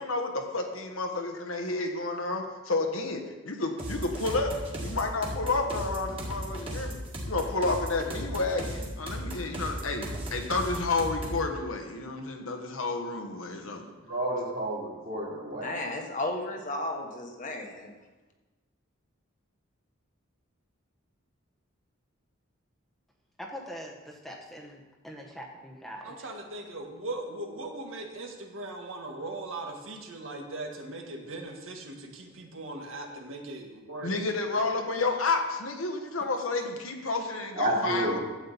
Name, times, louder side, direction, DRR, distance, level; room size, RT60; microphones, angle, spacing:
voice 1, 0.5-2.4 2.7-4.5 4.8-13.9 34.0-38.2, left 3 dB, 85° left, 3 dB, 1.3 m, -30 dB
sound 1, 3.8-11.5, equal, 25° right, 1.9 m, -36 dB
voice 2, 14.1-15.7 37.5-38.2, right 1 dB, 45° right, -5 dB, 2.9 m, -30 dB
voice 3, 15.6-17.9, left 2 dB, 40° left, 2 dB, 1.2 m, -34 dB
voice 4, 23.4-26.3, equal, ahead, -1 dB, 0.9 m, -43 dB
voice 5, 26.0-34.1 34.6-34.7, right 2 dB, 75° right, 2 dB, 1.6 m, -39 dB
12.0 x 8.6 x 4.1 m, 1.2 s
head